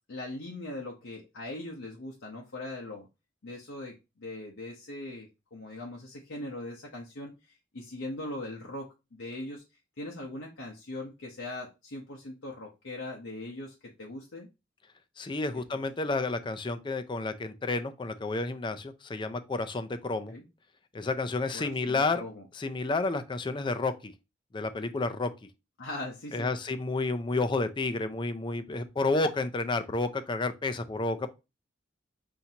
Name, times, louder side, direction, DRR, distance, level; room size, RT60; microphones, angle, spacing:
voice 1, 0.1-3.1 3.4-9.6 10.0-14.5 20.3-20.4 21.5-22.4 25.8-26.5, left 2 dB, 80° left, 0.8 m, -40 dB
voice 2, 15.2-20.3 20.9-22.2 22.6-24.1 24.5-25.3 26.3-31.4, left 3 dB, 25° left, 0.4 m, -30 dB
5.8 x 2.6 x 2.8 m
head